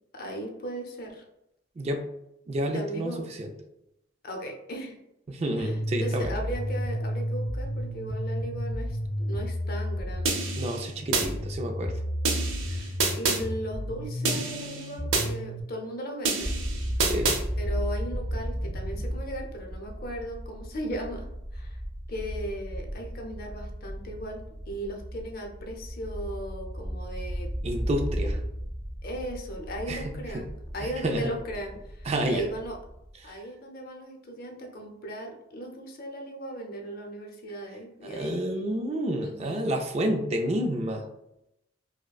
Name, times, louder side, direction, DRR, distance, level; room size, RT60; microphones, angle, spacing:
voice 1, 0.1-1.2 2.7-3.2 4.2-5.0 5.6-10.5 12.7-16.5 17.6-21.8 22.1-27.5 28.2-28.3 29.0-32.8 33.2-38.7 39.2-39.7, right 1 dB, 45° left, 2 dB, 0.6 m, -37 dB
voice 2, 1.8-2.1 2.5-3.5 5.3-6.4 10.6-12.0 17.0-17.3 27.6-28.4 29.9-30.4 30.8-31.3 32.1-32.5 33.2-33.3 38.0-41.1, right 1 dB, 30° right, 4 dB, 0.3 m, -30 dB
sound 1, 5.6-15.6, equal, 20° left, 0.8 m, -32 dB
sound 2, 10.3-11.3 12.2-13.4 14.2-15.3 16.2-17.4, right 4 dB, 75° right, 0.6 m, -28 dB
sound 3, 16.4-33.2, equal, 50° right, 1.0 m, -35 dB
4.9 x 2.1 x 2.3 m, 0.84 s
head